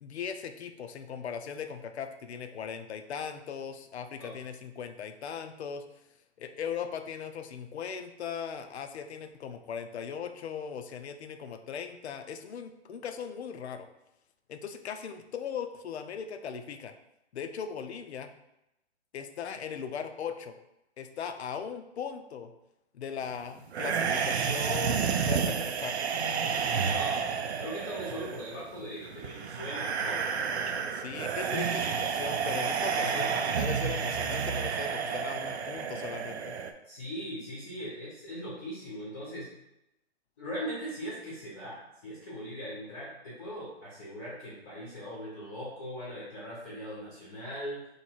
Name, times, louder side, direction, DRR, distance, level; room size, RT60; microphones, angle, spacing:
voice 1, 0.0-5.8 6.4-13.9 14.5-16.9 17.3-18.3 19.1-20.5 21.0-22.5 22.9-26.0 30.9-36.6, left 7 dB, 70° left, 8 dB, 0.6 m, -38 dB
sound 1, 23.7-36.7, right 6 dB, 70° right, 0.5 m, -30 dB
voice 2, 26.8-27.2 27.6-30.2 33.0-33.3 36.8-39.5 40.4-47.8, equal, 15° left, -6 dB, 0.7 m, -40 dB
3.1 x 2.8 x 4.3 m, 0.88 s
hypercardioid pair, 160°, 34 cm